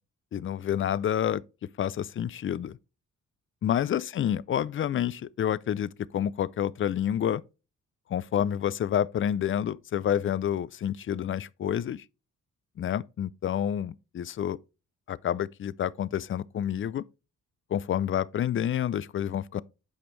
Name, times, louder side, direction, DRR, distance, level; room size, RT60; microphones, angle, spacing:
voice 1, 0.3-1.4 1.8-2.8 3.6-7.4 8.1-12.0 12.8-14.6 15.1-17.0 17.7-19.6, left 10 dB, 40° left, 0.4 m, -28 dB
8.8 x 5.2 x 3.2 m
cardioid pair, 105°, 32 cm